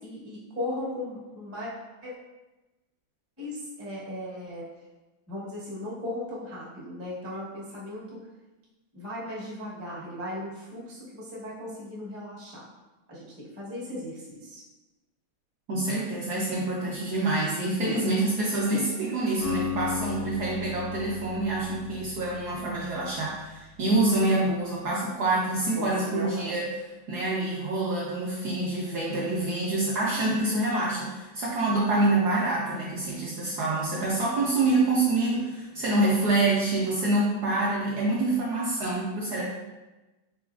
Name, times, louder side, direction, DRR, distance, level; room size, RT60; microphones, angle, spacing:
voice 1, 0.0-1.7 2.0-2.1 3.4-4.7 5.3-8.2 8.9-12.7 13.1-14.6 17.8-18.1 18.7-18.9 19.9-20.1 25.7-26.6 35.8-36.0, left 1 dB, 20° right, -7 dB, 0.3 m, -37 dB
voice 2, 15.7-26.7 27.1-39.4, right 2 dB, 75° right, -4 dB, 0.9 m, -26 dB
Acoustic guitar, 19.4-23.5, left 7 dB, 80° left, 0.5 m, -36 dB
4.2 x 3.8 x 2.4 m, 1.1 s
omnidirectional pair, 2.2 m